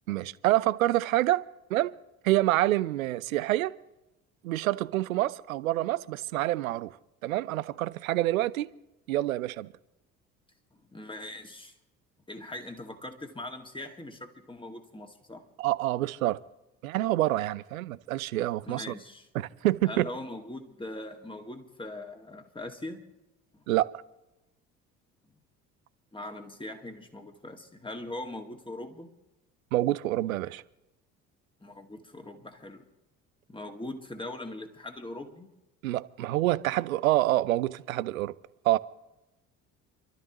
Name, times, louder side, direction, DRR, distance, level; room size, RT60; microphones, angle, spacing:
voice 1, 0.1-1.4 1.7-1.9 2.2-3.7 4.4-6.9 7.2-8.7 9.1-9.7 15.6-16.4 16.8-18.8 19.3-20.1 23.7-23.9 29.7-30.6 35.8-38.3 38.6-38.8, right 16 dB, 80° right, 0.5 m, -27 dB
voice 2, 10.7-11.7 12.3-15.5 18.6-19.3 19.8-23.0 23.5-23.6 26.1-29.1 31.6-32.9 33.5-35.5, left 1 dB, 10° left, 1.9 m, -41 dB
28.0 x 12.5 x 3.0 m
figure-of-eight pair, 55°, 41 cm